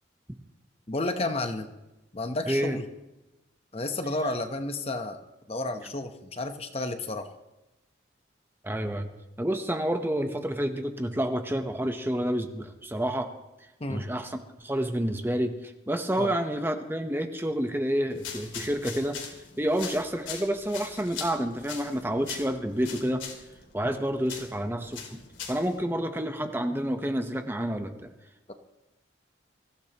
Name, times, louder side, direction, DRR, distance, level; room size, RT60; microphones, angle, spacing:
voice 1, 0.9-1.7 2.1-2.8 3.7-5.2 5.5-7.3 13.8-14.1 16.2-16.3 28.5-28.6, left 2 dB, 30° left, 7 dB, 0.9 m, -31 dB
voice 2, 2.5-2.8 8.6-9.1 9.4-13.3 13.9-19.2 19.6-23.2 23.7-25.2 25.5-28.0, right 1 dB, 10° right, 6 dB, 0.9 m, -29 dB
sound 1, 18.1-25.8, left 6 dB, 80° left, 2.5 m, -42 dB
23.5 x 15.5 x 3.0 m, 1.0 s
head